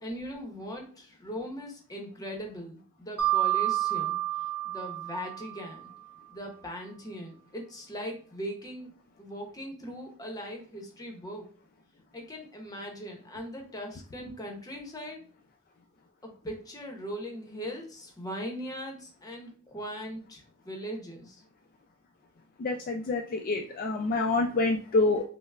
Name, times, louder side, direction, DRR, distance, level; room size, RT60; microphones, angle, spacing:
voice 1, 0.0-5.9 6.3-8.9 9.2-11.5 12.1-15.2 16.2-21.4, equal, 15° left, 2 dB, 0.7 m, -40 dB
Mallet percussion, 3.2-6.0, right 14 dB, 90° right, 0.8 m, -29 dB
voice 2, 22.6-25.2, left 3 dB, 40° left, 2 dB, 0.3 m, -27 dB
5.3 x 2.0 x 2.3 m, 0.41 s
head